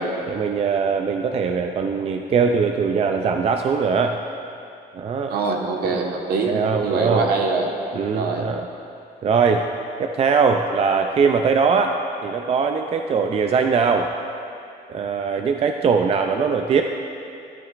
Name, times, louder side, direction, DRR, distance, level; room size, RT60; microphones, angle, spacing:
voice 1, 0.3-4.2 4.9-5.3 5.9-6.0 6.5-7.3 7.9-8.7 9.2-9.6 10.0-14.1 14.9-16.8, right 5 dB, 35° right, 4 dB, 0.4 m, -21 dB
voice 2, 5.3-6.5 6.8-7.7 8.1-8.5, right 4 dB, 65° right, 0 dB, 1.4 m, -23 dB
12.5 x 12.0 x 2.5 m, 2.6 s
cardioid pair, 110°, 17 cm